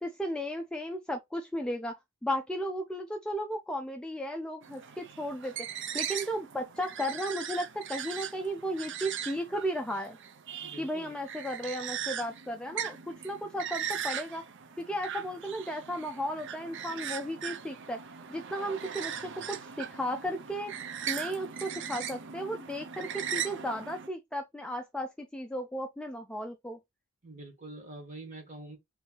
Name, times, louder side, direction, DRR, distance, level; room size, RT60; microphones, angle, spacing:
voice 1, 0.0-10.2 10.8-14.4 14.8-18.0 18.3-20.7 21.1-26.8, equal, 5° left, 0.4 m, -35 dB
sound 1, 4.6-24.1, right 8 dB, 55° right, 0.6 m, -39 dB
voice 2, 10.6-11.2 27.2-28.8, right 2 dB, 35° right, 1.8 m, -45 dB
3.4 x 3.1 x 4.4 m
head